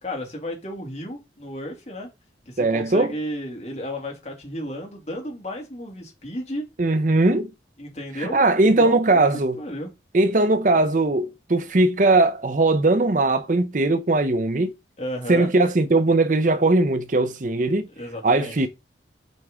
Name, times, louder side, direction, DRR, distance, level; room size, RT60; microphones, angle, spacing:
voice 1, 0.0-2.1 2.5-6.6 7.8-9.2 9.6-9.9 15.0-15.5 18.0-18.5, equal, 35° left, 2.6 m, -33 dB
voice 2, 2.6-3.1 6.8-7.5 8.2-9.6 10.1-14.7 15.3-17.9 18.2-18.7, right 2 dB, 45° right, 0.6 m, -19 dB
7.7 x 4.6 x 3.7 m
head